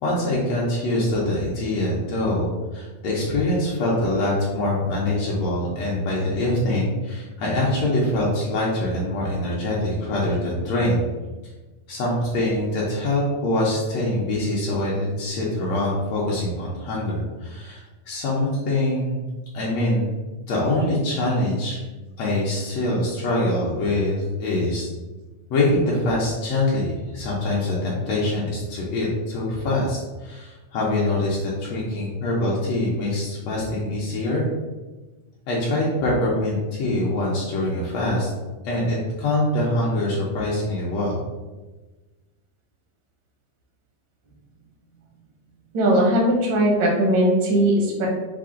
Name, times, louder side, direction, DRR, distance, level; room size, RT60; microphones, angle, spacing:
voice 1, 0.0-11.0 11.9-19.2 19.5-20.2 20.5-21.8 22.2-24.9 25.5-34.4 35.5-38.3 38.6-41.1, left 1 dB, 70° left, -5 dB, 1.7 m, -24 dB
voice 2, 45.7-48.1, right 1 dB, 65° right, -2 dB, 1.1 m, -19 dB
5.7 x 2.1 x 3.6 m, 1.2 s
omnidirectional pair, 3.4 m